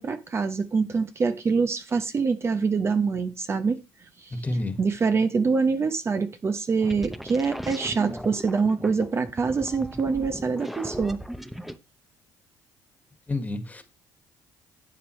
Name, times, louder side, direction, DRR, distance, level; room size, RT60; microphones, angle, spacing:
voice 1, 0.0-3.8 4.2-4.3 4.8-11.2, right 5 dB, 35° right, 0.9 m, -25 dB
voice 2, 4.3-4.8 13.3-13.8, left 2 dB, 20° left, 1.8 m, -29 dB
sound 1, 6.8-11.8, equal, ahead, 0.8 m, -37 dB
12.0 x 8.1 x 3.2 m
cardioid pair, 95°, 8 cm